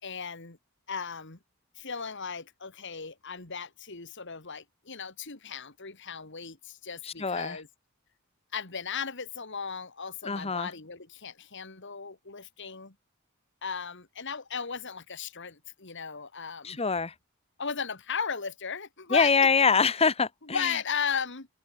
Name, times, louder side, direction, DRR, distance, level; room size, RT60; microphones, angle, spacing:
voice 1, 0.0-0.6 0.9-1.4 1.8-7.7 8.5-12.9 13.6-16.8 17.6-19.3 20.4-21.5, left 6 dB, 60° left, 2.5 m, -36 dB
voice 2, 7.2-7.6 10.2-10.7 16.6-17.1 19.1-20.6, left 5 dB, 30° left, 1.1 m, -24 dB
open air
head